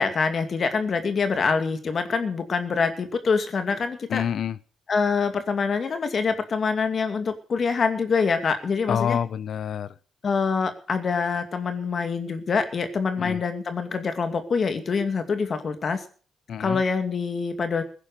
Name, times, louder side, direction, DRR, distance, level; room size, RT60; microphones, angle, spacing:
voice 1, 0.0-4.2 4.9-9.2 10.2-16.0 16.6-17.8, left 5 dB, 45° left, 8 dB, 2.4 m, -25 dB
voice 2, 4.1-4.6 8.9-9.9 13.2-13.4 16.5-16.8, left 8 dB, 60° left, 20 dB, 0.8 m, -27 dB
16.0 x 10.0 x 6.8 m, 0.43 s
cardioid pair, 90°, 0 cm